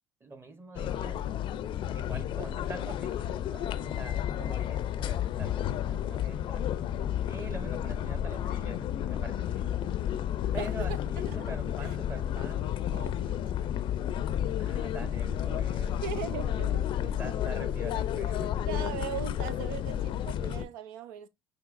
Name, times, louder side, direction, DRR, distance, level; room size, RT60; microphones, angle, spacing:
voice 1, 0.2-1.3 1.9-6.7 7.2-9.8 10.5-12.8 14.6-16.0 17.0-18.6, right 2 dB, 25° right, 1.1 m, -45 dB
sound 1, 0.8-20.7, left 10 dB, 60° left, 0.4 m, -31 dB
voice 2, 10.6-10.9 11.2-11.3 11.8-12.0 12.9-13.7 15.5-16.8 18.7-21.3, right 10 dB, 90° right, 0.5 m, -40 dB
5.8 x 2.8 x 2.5 m
supercardioid pair, 80°, 10 cm